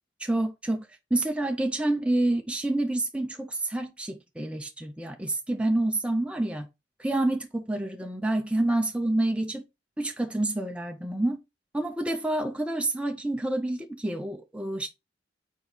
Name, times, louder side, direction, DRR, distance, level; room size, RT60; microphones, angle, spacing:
voice 1, 0.2-0.9 1.1-6.7 7.0-9.6 10.0-11.4 11.7-14.9, right 1 dB, 5° right, 0.7 m, -28 dB
4.6 x 4.5 x 5.4 m
head